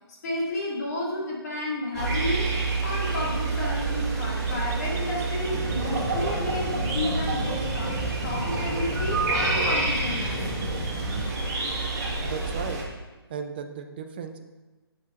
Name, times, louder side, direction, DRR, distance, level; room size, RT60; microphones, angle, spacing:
voice 1, 0.2-2.5 2.8-10.6, left 1 dB, 40° left, -4 dB, 2.2 m, -31 dB
sound 1, 1.9-12.8, right 3 dB, 40° right, 1.7 m, -28 dB
sound 2, 5.5-11.2, left 1 dB, 10° right, 1.7 m, -33 dB
voice 2, 12.2-12.8 13.3-14.4, right 6 dB, 25° right, 6 dB, 0.4 m, -35 dB
11.5 x 5.7 x 2.5 m, 1.2 s
hypercardioid pair, 155°, 13 cm